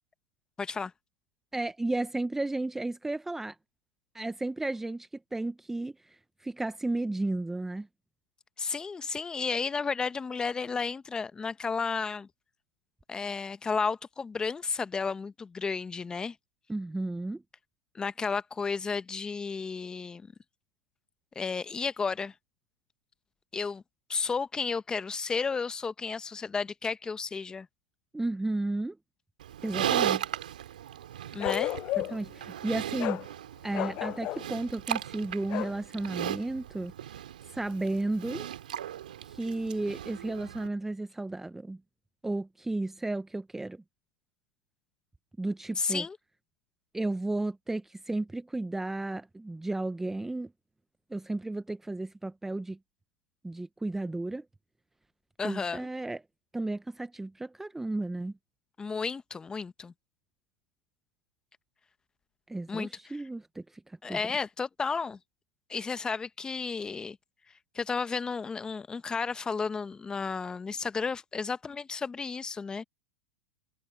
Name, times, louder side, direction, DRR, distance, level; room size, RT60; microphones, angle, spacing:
voice 1, 0.6-0.9 8.6-12.3 13.1-16.3 17.9-20.2 21.3-22.3 23.5-23.8 24.1-27.7 31.3-31.8 45.8-46.2 55.4-55.9 58.8-59.9 62.7-62.9 64.0-65.2 65.7-67.2 67.7-72.8, left 5 dB, 15° left, 1.1 m, -32 dB
voice 2, 1.5-3.6 4.1-7.9 16.7-17.4 28.1-29.0 29.6-30.3 32.0-33.3 33.6-36.9 37.5-38.5 39.2-41.8 42.2-43.8 45.4-46.1 46.9-50.5 51.1-52.8 53.4-54.4 55.4-56.2 56.5-58.3 62.5-64.2, right 2 dB, 5° right, 0.7 m, -33 dB
Livestock farm animals working animals, 29.4-40.7, right 11 dB, 80° right, 3.0 m, -36 dB
Bark, 31.4-32.3 33.0-33.3 33.7-34.5 35.5-35.8, left 17 dB, 40° left, 0.3 m, -32 dB
hypercardioid pair, 105°, 5 cm